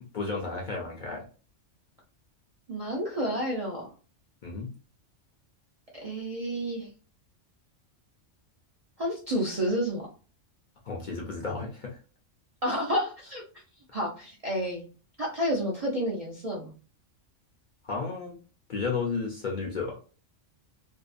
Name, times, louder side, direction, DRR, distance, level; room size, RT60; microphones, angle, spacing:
voice 1, 0.1-1.3 4.4-4.7 10.9-12.0 17.8-18.4 18.7-20.0, left 4 dB, 50° left, -1 dB, 0.6 m, -33 dB
voice 2, 2.7-3.9 5.9-6.9 9.0-10.1 12.6-13.4 13.9-14.8 15.2-16.7, equal, 45° right, -4 dB, 0.5 m, -30 dB
2.7 x 2.2 x 2.4 m, 0.37 s
omnidirectional pair, 1.3 m